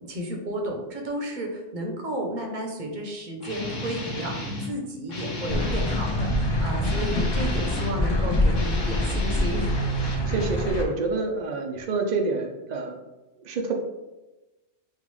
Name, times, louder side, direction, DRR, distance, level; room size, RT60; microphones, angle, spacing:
voice 1, 0.0-9.8, right 1 dB, 45° right, 1 dB, 0.7 m, -32 dB
Guitar, 3.4-4.7 5.1-8.0 8.5-10.7, right 1 dB, 80° left, 1.4 m, -31 dB
sound 1, 5.5-10.8, left 2 dB, 45° left, 0.3 m, -26 dB
voice 2, 10.1-13.0 13.4-13.7, right 3 dB, 70° right, 2 dB, 0.4 m, -28 dB
5.5 x 2.4 x 3.1 m, 1.1 s
omnidirectional pair, 1.3 m